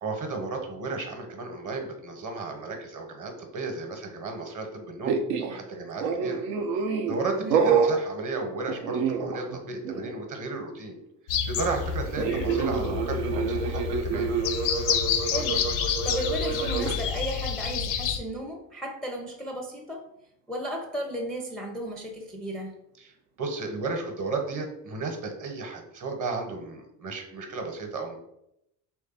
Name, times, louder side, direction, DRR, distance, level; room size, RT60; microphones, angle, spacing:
voice 1, 0.0-6.4 7.1-11.0 11.4-14.3 23.0-28.2, right 3 dB, 40° right, 4 dB, 1.0 m, -34 dB
sound 1, 5.1-5.6 6.0-7.2 7.5-8.0 8.7-9.6 9.8-10.1 12.2-17.0, right 6 dB, 80° right, 0.7 m, -27 dB
sound 2, 11.3-18.2, left 8 dB, 80° left, 0.6 m, -29 dB
voice 2, 15.2-15.7 16.0-20.1 20.5-22.7, equal, ahead, 0 dB, 0.4 m, -34 dB
3.3 x 2.6 x 3.9 m, 0.81 s
hypercardioid pair, 70°, 48 cm